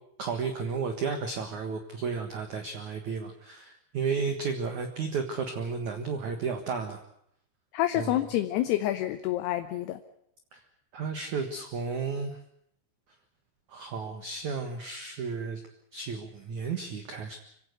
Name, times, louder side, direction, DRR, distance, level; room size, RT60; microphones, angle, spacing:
voice 1, 0.2-7.0 8.0-8.1 10.5-10.6 10.9-12.3 13.7-15.6 15.9-17.4, right 5 dB, 55° right, 6 dB, 2.3 m, -33 dB
voice 2, 7.7-10.0, left 13 dB, 75° left, 9 dB, 2.7 m, -28 dB
26.0 x 16.5 x 8.1 m, 0.72 s
omnidirectional pair, 5.4 m